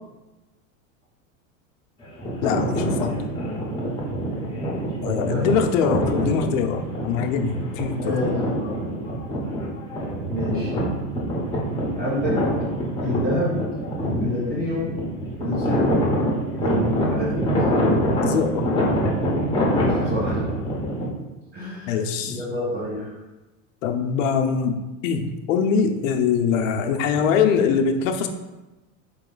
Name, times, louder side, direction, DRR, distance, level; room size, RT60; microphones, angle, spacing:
sound 1, 2.0-21.1, equal, 10° left, 0.9 m, -25 dB
voice 1, 2.4-3.3 5.0-8.3 18.3-18.7 21.9-22.4 23.8-28.3, left 6 dB, 75° left, 6 dB, 0.6 m, -23 dB
voice 2, 5.0-5.5 8.0-8.3 10.3-10.7 11.9-12.4 13.0-13.6 14.0-14.9 15.4-16.0 16.6-17.5 19.7-20.4 21.5-21.9 22.2-23.1, equal, 25° right, -8 dB, 1.4 m, -27 dB
4.1 x 3.0 x 3.9 m, 1.1 s
supercardioid pair, 130°, 39 cm